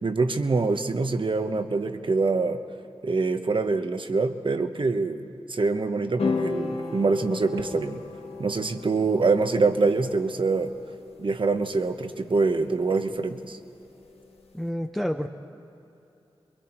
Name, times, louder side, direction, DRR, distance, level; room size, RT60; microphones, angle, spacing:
voice 1, 0.0-2.6 3.0-5.2 5.5-8.0 8.4-10.7 11.2-13.6, right 3 dB, 55° right, 7 dB, 1.2 m, -25 dB
sound 1, 6.2-14.6, left 4 dB, 80° left, 1.3 m, -36 dB
voice 2, 14.5-15.3, equal, 5° left, 3 dB, 0.8 m, -28 dB
28.0 x 22.0 x 4.5 m, 2.8 s
cardioid pair, 50°, 10 cm